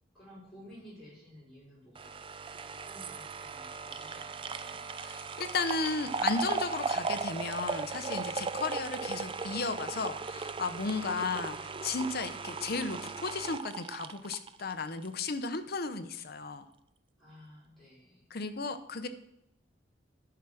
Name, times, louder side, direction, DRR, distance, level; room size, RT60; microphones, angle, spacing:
voice 1, 0.1-4.8 17.2-18.3, equal, ahead, -11 dB, 5.0 m, -54 dB
sound 1, 2.0-15.2 15.5-15.6, right 4 dB, 25° right, 0.4 m, -37 dB
voice 2, 5.0-16.7 18.3-19.1, left 4 dB, 55° left, 10 dB, 0.8 m, -34 dB
11.0 x 5.9 x 6.2 m, 0.80 s
head